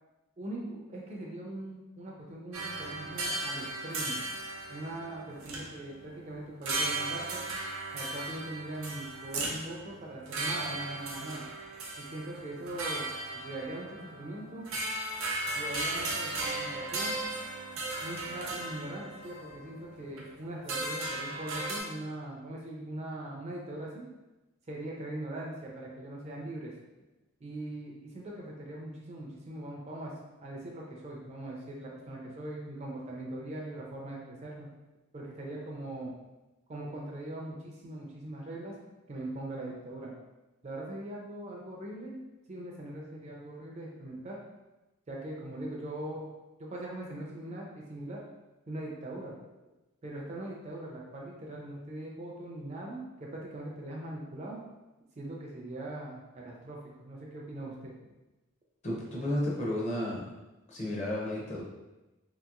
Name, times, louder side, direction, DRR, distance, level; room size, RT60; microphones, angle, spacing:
voice 1, 0.4-4.2 4.7-7.5 7.9-11.4 12.0-13.1 13.3-14.7 15.6-17.1 18.0-24.0 24.7-26.7 27.4-30.1 30.4-34.7 35.1-36.1 36.7-38.7 39.1-40.1 40.6-42.2 42.5-44.4 45.1-46.3 46.7-48.2 48.7-49.3 50.0-54.6 55.2-57.9, right 1 dB, 30° right, -2 dB, 0.4 m, -41 dB
sound 1, 2.5-6.1 6.6-20.2 20.6-21.8, right 2 dB, 75° right, 0.6 m, -36 dB
voice 2, 58.8-60.3 60.7-61.6, left 1 dB, 30° left, -5 dB, 0.6 m, -32 dB
2.8 x 2.8 x 2.4 m, 1.0 s
head